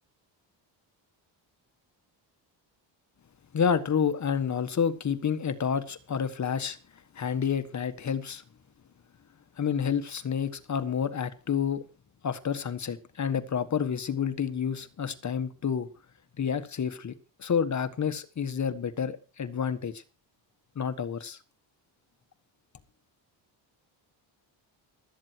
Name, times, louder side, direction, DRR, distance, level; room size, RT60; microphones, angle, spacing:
voice 1, 3.5-6.8 7.1-8.4 9.6-11.8 12.2-15.9 16.4-17.1 17.4-20.0 20.7-21.4, left 7 dB, 40° left, 1.5 m, -29 dB
16.0 x 13.0 x 4.6 m
cardioid pair, 110°, 44 cm